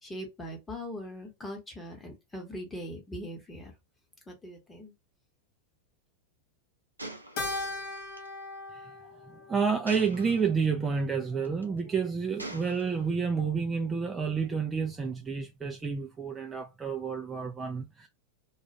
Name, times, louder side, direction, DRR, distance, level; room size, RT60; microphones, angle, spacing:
voice 1, 0.0-3.7 4.3-4.9, equal, 10° left, 1.0 m, -41 dB
Gunshot gunfire, 7.0-8.3 9.9-10.6 11.4-11.8 12.4-13.2, right 2 dB, 85° right, 0.5 m, -43 dB
Keyboard (musical), 7.4-12.0, left 2 dB, 50° left, 0.7 m, -40 dB
voice 2, 8.7-18.1, right 5 dB, 15° right, 0.4 m, -30 dB
2.4 x 2.3 x 2.9 m
figure-of-eight pair, 90°, 0 cm